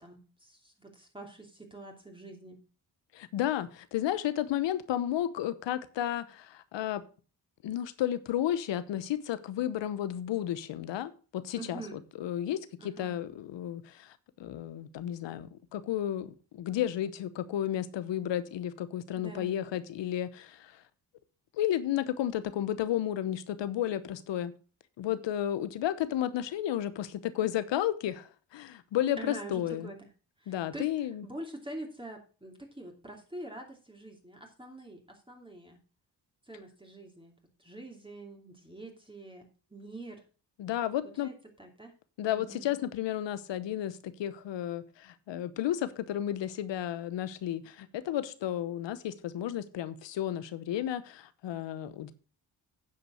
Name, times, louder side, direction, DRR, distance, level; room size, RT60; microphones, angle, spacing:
voice 1, 0.0-2.6 11.5-12.0 12.8-13.1 19.1-19.5 29.2-30.1 30.4-30.9 31.2-35.8 36.5-40.2 41.2-41.9 42.3-42.7, right 2 dB, 10° right, 2.8 m, -45 dB
voice 2, 3.1-7.0 7.6-14.1 14.4-20.7 21.6-24.5 25.0-29.9 30.5-31.3 40.6-41.3 42.2-52.1, left 11 dB, 80° left, 1.0 m, -32 dB
9.6 x 5.2 x 6.3 m
supercardioid pair, 50°, 43 cm